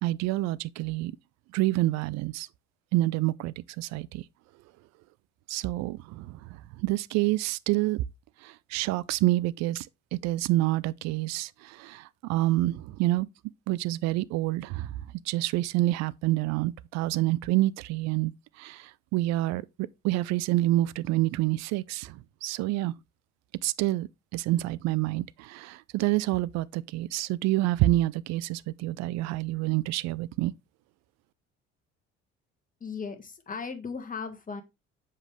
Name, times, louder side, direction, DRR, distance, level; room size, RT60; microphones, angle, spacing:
voice 1, 0.0-1.1 1.5-2.5 2.9-4.2 5.5-6.4 6.8-8.0 8.4-9.9 10.1-13.3 13.7-14.9 15.3-18.3 18.6-22.9 23.6-30.5, right 17 dB, 50° right, 0.5 m, -28 dB
voice 2, 32.8-34.6, left 5 dB, 25° left, 1.6 m, -37 dB
7.2 x 5.4 x 3.3 m
figure-of-eight pair, 55°, 35 cm